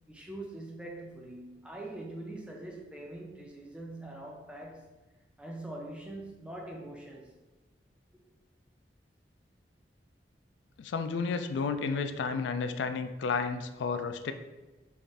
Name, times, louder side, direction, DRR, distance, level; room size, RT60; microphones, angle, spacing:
voice 1, 0.1-4.9 5.4-7.3, right 1 dB, 5° right, 0.5 m, -43 dB
voice 2, 10.8-14.3, left 5 dB, 85° left, 0.3 m, -32 dB
3.4 x 2.5 x 3.9 m
head